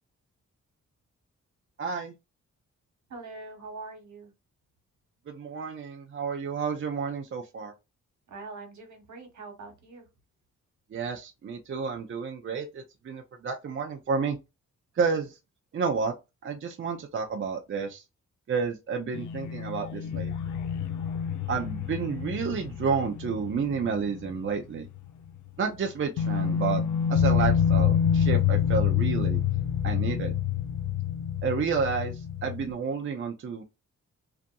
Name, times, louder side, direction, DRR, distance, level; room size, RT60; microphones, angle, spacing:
voice 1, 1.8-2.1 5.3-7.7 10.9-14.4 14.9-15.4 15.7-16.1 16.4-18.0 18.5-20.6 21.5-24.9 25.6-26.8 27.1-29.4 29.8-30.3 31.4-33.6, right 5 dB, 45° right, 0.5 m, -30 dB
voice 2, 3.1-4.3 8.3-10.0, right 3 dB, 65° right, 1.1 m, -43 dB
sound 1, 19.1-24.6 24.8-25.0 26.2-32.7, left 8 dB, 75° left, 0.5 m, -27 dB
2.6 x 2.5 x 2.2 m
cardioid pair, 75°, 30 cm